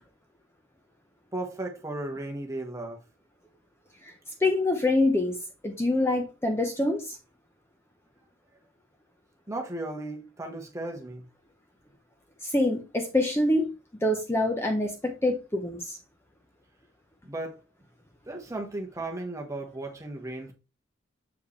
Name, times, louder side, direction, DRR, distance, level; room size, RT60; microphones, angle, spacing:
voice 1, 1.3-3.0 9.5-11.2 17.2-17.6 18.3-20.5, right 2 dB, 15° right, 1.2 m, -35 dB
voice 2, 4.4-5.4 5.6-7.2 12.4-13.7 14.0-16.0, left 1 dB, 15° left, 0.8 m, -25 dB
7.1 x 4.6 x 3.2 m
head